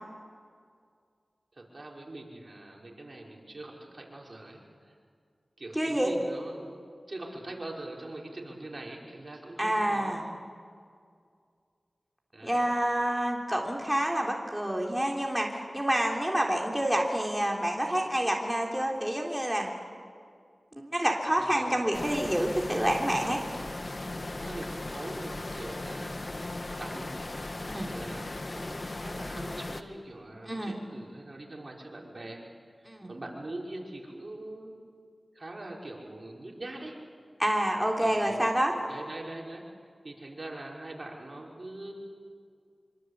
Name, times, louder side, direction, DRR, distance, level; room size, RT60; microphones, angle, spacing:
voice 1, 1.5-4.9 5.6-6.8 7.1-10.2 12.3-12.7 21.4-21.7 24.4-26.2 26.8-27.3 27.9-32.4 32.8-34.7 35.3-37.0 38.0-38.5 38.9-39.6 40.0-41.9, right 2 dB, 50° right, -1 dB, 5.5 m, -42 dB
voice 2, 5.7-6.1 9.6-10.3 12.4-19.7 20.8-23.4 27.6-27.9 30.4-30.8 32.9-33.1 37.4-38.8, right 1 dB, 5° right, 0 dB, 3.5 m, -28 dB
River Mirna Waterfall Near Mill, 21.9-29.8, left 2 dB, 45° left, 1.5 m, -37 dB
25.5 x 25.0 x 8.3 m, 2.2 s
cardioid pair, 45°, 0 cm